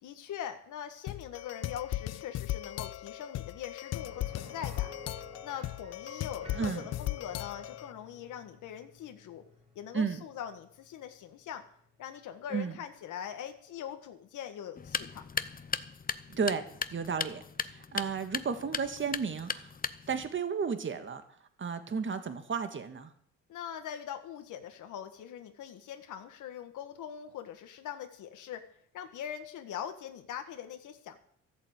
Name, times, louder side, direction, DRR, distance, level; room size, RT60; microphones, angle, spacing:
voice 1, 0.0-4.9 5.4-9.4 9.7-11.6 12.0-15.2 23.5-28.6 28.9-31.2, left 9 dB, 80° left, 6 dB, 1.6 m, -42 dB
sound 1, 1.1-7.9, left 14 dB, 60° left, 0.5 m, -37 dB
sound 2, 4.0-13.7 14.0-14.1 16.6-16.7, equal, 20° right, 4.6 m, -54 dB
sound 3, 14.8-20.3, left 6 dB, 30° left, 0.8 m, -37 dB
voice 2, 16.3-16.6 16.9-19.7 20.1-21.2 21.6-23.1, right 6 dB, 40° right, 9 dB, 1.8 m, -33 dB
14.0 x 8.3 x 8.2 m, 0.63 s
cardioid pair, 90°, 30 cm